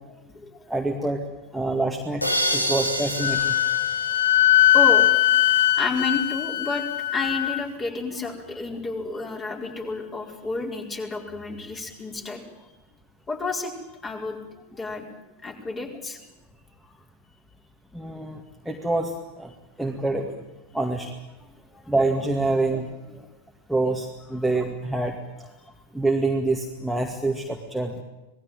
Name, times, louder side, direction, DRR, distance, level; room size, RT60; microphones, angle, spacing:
voice 1, 0.2-0.7 2.6-2.7 4.7-5.1 5.8-12.7 13.3-13.7 14.0-15.0 15.4-16.2 16.8-16.9 21.4-21.8 23.1-23.3, left 3 dB, 20° left, 2 dB, 4.9 m, -31 dB
voice 2, 0.7-1.2 1.5-2.2 2.5-3.6 17.9-18.4 18.7-19.1 19.4-19.5 19.8-20.3 20.7-21.1 21.9-22.9 23.7-25.1 25.9-28.0, right 2 dB, ahead, 0 dB, 2.2 m, -25 dB
sound 1, 2.2-5.0, equal, 85° left, 3.2 m, -28 dB
Wind instrument woodwind instrument, 3.2-7.6, left 13 dB, 55° left, 0.8 m, -20 dB
26.5 x 19.5 x 9.2 m, 1.0 s
figure-of-eight pair, 90°, 0 cm